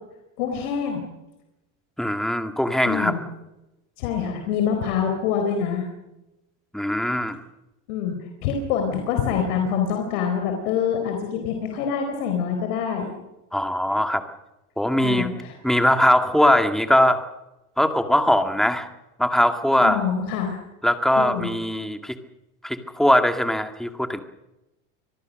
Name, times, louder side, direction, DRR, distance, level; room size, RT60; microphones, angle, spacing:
voice 1, 0.4-1.1 2.9-3.2 4.0-5.9 7.9-8.2 8.4-13.1 15.0-15.6 19.8-20.6 21.2-21.5, left 7 dB, 80° left, 4 dB, 4.2 m, -25 dB
voice 2, 2.0-3.2 6.7-7.4 13.5-14.2 14.8-15.3 15.6-17.2 17.8-18.9 19.2-20.0 20.8-22.1 22.6-24.2, left 1 dB, ahead, 7 dB, 2.1 m, -20 dB
26.0 x 19.0 x 6.5 m, 0.96 s
supercardioid pair, 120°, 44 cm